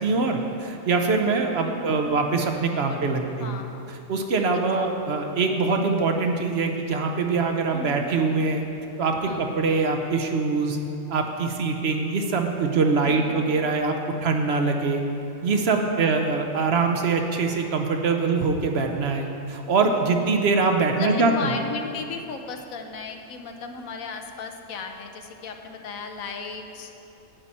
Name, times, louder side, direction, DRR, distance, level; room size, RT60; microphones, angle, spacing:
voice 1, 0.0-3.6 4.1-8.6 9.0-10.8 11.1-14.0 14.2-15.0 15.4-21.5, right 4 dB, 55° right, 4 dB, 0.9 m, -23 dB
voice 2, 1.6-2.1 2.9-3.0 3.4-4.0 4.5-5.2 7.7-8.1 9.3-9.5 13.1-13.5 16.0-16.4 19.9-20.5 20.9-26.9, left 4 dB, 90° left, 5 dB, 1.2 m, -36 dB
10.5 x 8.7 x 4.2 m, 2.7 s
omnidirectional pair, 1.4 m